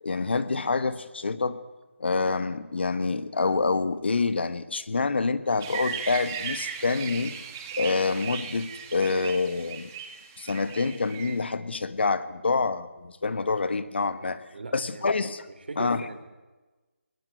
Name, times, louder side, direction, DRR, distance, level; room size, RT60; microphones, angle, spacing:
voice 1, 0.0-1.6 2.0-7.4 7.8-9.9 10.4-14.4 14.7-15.4 15.8-16.0, left 4 dB, 55° left, 14 dB, 1.5 m, -27 dB
sound 1, 5.6-11.4, right 7 dB, 15° right, 1.7 m, -37 dB
voice 2, 14.2-15.1 15.7-16.2, right 3 dB, 50° right, 7 dB, 4.0 m, -39 dB
20.5 x 19.0 x 9.3 m, 1.2 s
hypercardioid pair, 175°, 7 cm